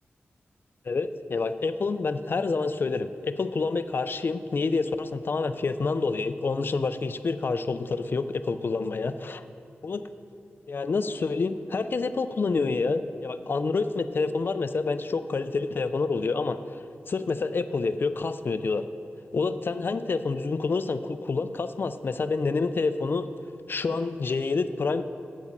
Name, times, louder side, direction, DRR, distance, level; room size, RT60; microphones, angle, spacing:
voice 1, 0.9-9.4 9.8-10.1 10.7-18.8 19.3-23.3 23.7-25.0, left 4 dB, 50° left, 11 dB, 0.4 m, -28 dB
8.2 x 7.2 x 5.3 m, 2.6 s
cardioid pair, 55°, 4 cm